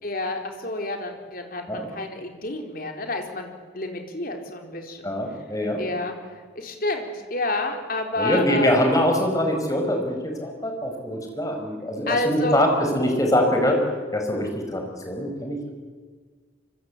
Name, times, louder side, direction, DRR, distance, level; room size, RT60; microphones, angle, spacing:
voice 1, 0.0-5.1 5.8-6.1 6.6-8.7 12.1-12.7, left 2 dB, 50° left, 3 dB, 4.2 m, -29 dB
voice 2, 5.0-5.8 8.2-13.9 14.1-15.7, equal, 20° left, 3 dB, 4.8 m, -23 dB
26.0 x 25.0 x 8.6 m, 1.5 s
head